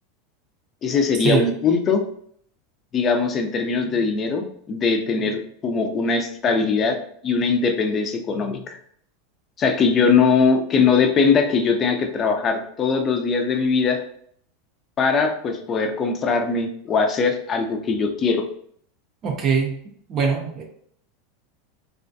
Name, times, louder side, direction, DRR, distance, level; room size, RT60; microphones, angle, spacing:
voice 1, 0.8-2.0 2.9-7.0 7.2-8.8 9.6-14.0 15.0-18.4, left 5 dB, 30° left, 5 dB, 0.4 m, -21 dB
voice 2, 19.2-19.8 20.1-20.6, right 6 dB, 40° right, 2 dB, 0.5 m, -22 dB
2.4 x 2.2 x 2.5 m, 0.64 s
supercardioid pair, 120°, 0 cm